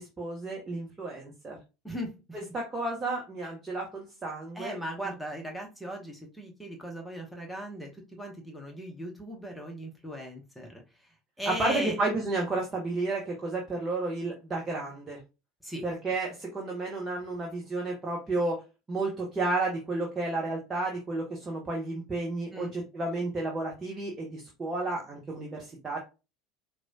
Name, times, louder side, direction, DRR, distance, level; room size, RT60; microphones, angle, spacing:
voice 1, 0.0-1.6 2.5-4.8 5.0-5.1 11.5-15.2 15.8-18.6 18.9-26.0, right 2 dB, 20° right, -1 dB, 1.1 m, -32 dB
voice 2, 1.8-2.4 4.5-7.9 8.2-10.7 11.0-11.1 11.4-12.0 15.6-15.8 22.5-22.7, equal, 5° left, 0 dB, 1.0 m, -38 dB
4.6 x 2.3 x 2.8 m, 0.28 s
figure-of-eight pair, 70°, 0 cm